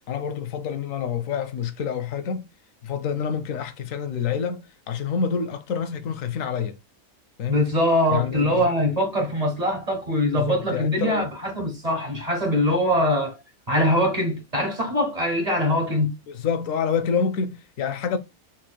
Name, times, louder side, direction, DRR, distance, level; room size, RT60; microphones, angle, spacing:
voice 1, 0.1-2.5 2.8-6.8 7.4-7.6 8.1-8.6 10.3-11.2 16.3-18.2, left 6 dB, 75° left, 1.0 m, -27 dB
voice 2, 7.5-13.4 13.7-16.1, left 1 dB, 30° right, 1.1 m, -23 dB
4.3 x 3.0 x 2.2 m
omnidirectional pair, 1.4 m